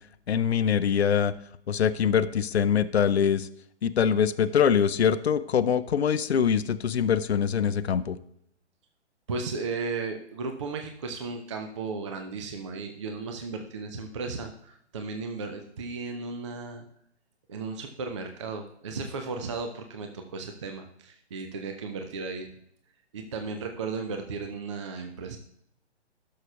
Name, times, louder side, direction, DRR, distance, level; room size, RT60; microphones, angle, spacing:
voice 1, 0.3-1.3 1.7-3.5 3.8-8.2, left 7 dB, 65° left, 15 dB, 0.5 m, -23 dB
voice 2, 9.3-16.9 17.5-22.5 23.1-25.4, right 4 dB, 25° right, 5 dB, 0.5 m, -35 dB
13.0 x 6.6 x 2.3 m, 0.72 s
figure-of-eight pair, 135°, 35 cm